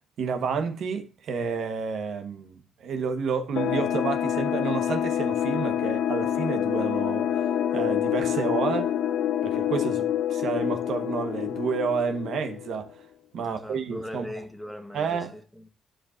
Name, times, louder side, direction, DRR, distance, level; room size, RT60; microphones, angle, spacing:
voice 1, 0.2-8.9 9.4-12.9 13.3-14.3 14.9-15.4, right 5 dB, 70° right, 1.2 m, -30 dB
sound 1, 3.6-12.9, left 10 dB, 85° left, 0.6 m, -27 dB
voice 2, 13.3-15.7, left 1 dB, 5° left, 1.3 m, -40 dB
11.5 x 5.0 x 2.5 m
cardioid pair, 90°, 0 cm